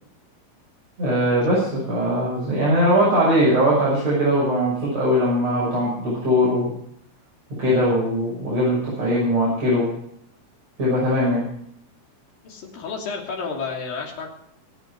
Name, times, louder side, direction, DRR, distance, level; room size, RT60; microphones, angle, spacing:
voice 1, 1.0-6.7 7.6-9.9 10.8-11.4, equal, 45° right, -7 dB, 7.2 m, -20 dB
voice 2, 12.4-14.3, left 5 dB, 80° left, 0 dB, 4.7 m, -31 dB
24.0 x 9.4 x 4.8 m, 0.71 s
omnidirectional pair, 4.0 m